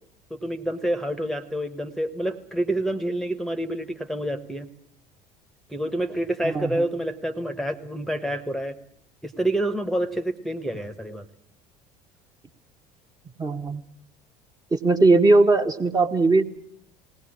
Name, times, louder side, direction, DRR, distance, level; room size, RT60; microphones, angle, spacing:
voice 1, 0.3-4.7 5.7-8.7 9.2-11.2, right 1 dB, ahead, 10 dB, 1.4 m, -28 dB
voice 2, 6.4-6.8 13.4-13.8 14.7-16.4, right 3 dB, 20° right, 5 dB, 1.5 m, -19 dB
20.0 x 18.5 x 8.8 m, 0.66 s
figure-of-eight pair, 65°, 20 cm